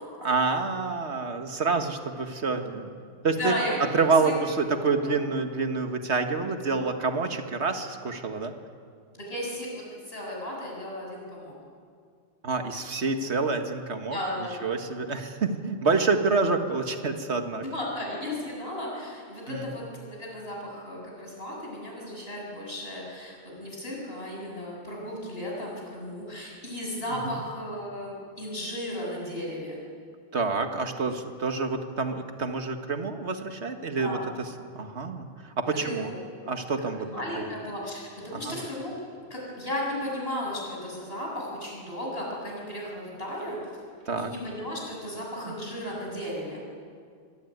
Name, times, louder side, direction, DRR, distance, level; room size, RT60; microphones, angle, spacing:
voice 1, 0.2-2.9 3.2-3.5 3.9-8.5 12.4-14.2 14.6-17.6 19.5-19.7 27.1-27.4 30.3-34.2 34.8-35.3 35.6-36.1 36.5-37.1 37.3-37.5 38.3-38.6 44.1-44.3 45.4-45.5, right 4 dB, 80° right, 6 dB, 1.9 m, -27 dB
voice 2, 3.4-3.8 4.2-4.3 5.0-5.2 9.1-11.5 14.1-14.6 17.6-29.8 33.9-34.2 35.7-36.2 37.0-43.6 44.2-46.6, left 1 dB, 65° left, -3 dB, 7.8 m, -35 dB
24.5 x 18.0 x 9.4 m, 2.2 s
omnidirectional pair, 1.1 m